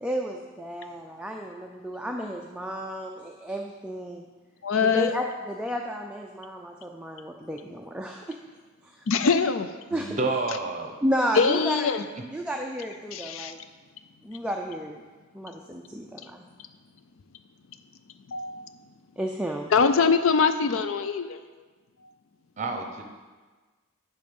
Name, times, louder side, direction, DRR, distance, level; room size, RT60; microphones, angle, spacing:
voice 1, 0.0-4.3 4.8-8.4 8.8-9.0 9.9-10.2 11.0-11.9 12.3-13.6 14.2-15.0 15.3-16.5 19.2-19.7, equal, 5° right, 1 dB, 0.4 m, -32 dB
voice 2, 4.6-5.1 9.1-9.7 11.4-12.0 13.1-13.5 18.3-18.6 19.7-21.4, left 5 dB, 65° left, 10 dB, 0.4 m, -23 dB
voice 3, 9.9-10.9 22.6-23.0, right 3 dB, 35° right, 3 dB, 0.8 m, -29 dB
10.5 x 3.9 x 5.3 m, 1.3 s
head